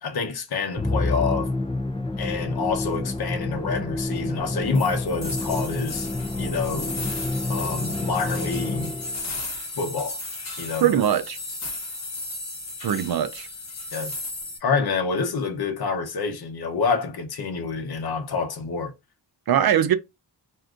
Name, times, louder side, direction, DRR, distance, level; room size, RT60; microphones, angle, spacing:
voice 1, 0.0-1.5 2.2-6.1 6.4-6.9 7.5-8.9 9.8-10.2 10.6-11.0 13.9-14.1 14.6-18.9, left 5 dB, 60° left, 0.9 m, -27 dB
Musical instrument, 0.8-9.3, left 2 dB, 15° left, 0.4 m, -28 dB
sound 1, 4.7-14.6, left 2 dB, 40° left, 1.1 m, -35 dB
voice 2, 10.8-11.4 12.8-13.5 19.5-19.9, right 10 dB, 60° right, 0.5 m, -21 dB
2.7 x 2.3 x 3.6 m
wide cardioid pair, 90°, 43 cm